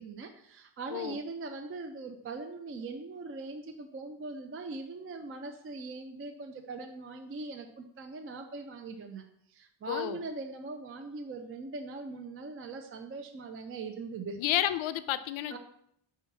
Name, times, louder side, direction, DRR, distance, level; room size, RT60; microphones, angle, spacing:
voice 1, 0.0-14.4 15.5-15.6, right 3 dB, 30° right, 5 dB, 0.4 m, -41 dB
voice 2, 9.9-10.2 14.4-15.6, left 13 dB, 85° left, 14 dB, 0.6 m, -31 dB
5.6 x 4.6 x 5.9 m, 0.72 s
cardioid pair, 165°, 47 cm